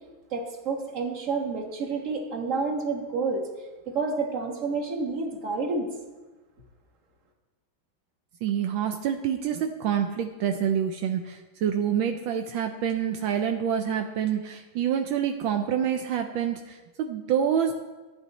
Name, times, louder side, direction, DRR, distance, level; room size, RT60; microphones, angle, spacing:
voice 1, 0.3-3.4 3.9-5.9, right 4 dB, 40° right, 2 dB, 1.7 m, -29 dB
voice 2, 8.4-17.7, right 8 dB, 80° right, 5 dB, 1.4 m, -27 dB
14.0 x 8.9 x 4.1 m, 1.2 s
omnidirectional pair, 2.2 m